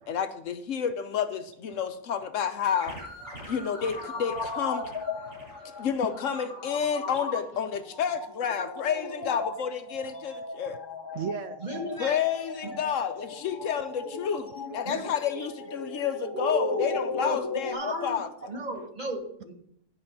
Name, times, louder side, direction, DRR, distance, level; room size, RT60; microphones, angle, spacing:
voice 1, 0.1-3.0 3.5-4.8 5.8-10.8 12.0-18.3, left 8 dB, 70° left, 10 dB, 1.0 m, -30 dB
sound 1, 2.6-7.0, equal, 50° right, 5.0 m, -45 dB
sound 2, 3.2-17.7, left 3 dB, 20° left, 0.9 m, -37 dB
voice 2, 3.3-3.6 5.1-5.9 10.7-10.8 11.1-11.8, right 7 dB, 70° right, 10 dB, 0.9 m, -39 dB
voice 3, 11.6-12.2 12.6-12.7 14.9-15.1 16.3-17.4 17.7-18.2 18.5-19.5, right 2 dB, 35° right, 1 dB, 1.8 m, -34 dB
11.0 x 5.2 x 5.3 m, 0.71 s
omnidirectional pair, 1.5 m